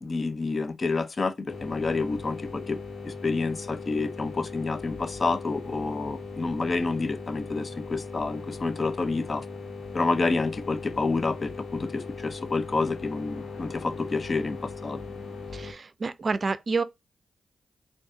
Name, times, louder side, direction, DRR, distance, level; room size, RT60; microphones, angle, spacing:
voice 1, 0.0-2.8 3.0-9.4 9.9-15.0, left 3 dB, 45° left, 0.6 m, -28 dB
sound 1, 1.5-15.7, left 4 dB, 70° left, 1.1 m, -39 dB
voice 2, 15.5-16.8, right 4 dB, 50° right, 0.4 m, -28 dB
3.8 x 2.6 x 3.6 m
supercardioid pair, 45°, 0 cm